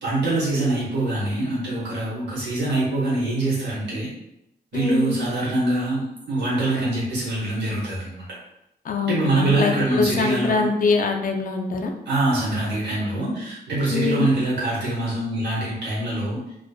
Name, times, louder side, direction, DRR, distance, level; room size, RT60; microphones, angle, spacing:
voice 1, 0.0-4.1 4.7-8.3 9.1-10.7 12.1-16.4, right 2 dB, 85° right, -7 dB, 0.8 m, -24 dB
voice 2, 4.7-5.2 8.8-11.9 13.9-14.3, left 4 dB, 50° left, 3 dB, 0.4 m, -23 dB
2.4 x 2.4 x 2.2 m, 0.84 s
wide cardioid pair, 105°, 18 cm